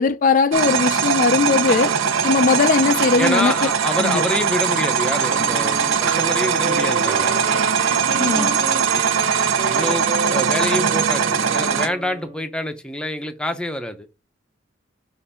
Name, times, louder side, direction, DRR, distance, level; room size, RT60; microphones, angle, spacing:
voice 1, 0.0-1.9 2.2-3.5 4.0-4.2 8.2-8.5, left 4 dB, 40° left, 0.4 m, -18 dB
sound 1, 0.5-11.9, right 6 dB, 85° right, 0.6 m, -20 dB
voice 2, 3.2-7.3 9.7-14.1, left 1 dB, 5° left, 0.7 m, -26 dB
sound 2, 5.3-12.5, right 4 dB, 35° right, 1.5 m, -31 dB
6.6 x 2.6 x 5.5 m
head